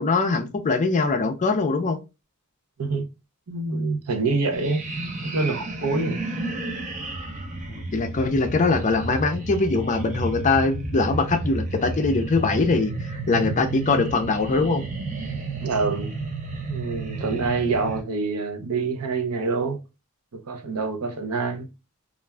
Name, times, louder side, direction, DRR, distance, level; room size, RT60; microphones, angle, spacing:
voice 1, 0.0-2.0 7.7-14.9, left 3 dB, 35° left, 0.4 m, -22 dB
voice 2, 3.5-4.9 5.2-6.2 15.6-16.1 16.6-19.8 20.3-21.7, right 4 dB, 80° right, 0.6 m, -26 dB
sound 1, 4.5-18.0, right 2 dB, 35° right, 0.6 m, -32 dB
2.4 x 2.2 x 3.1 m
head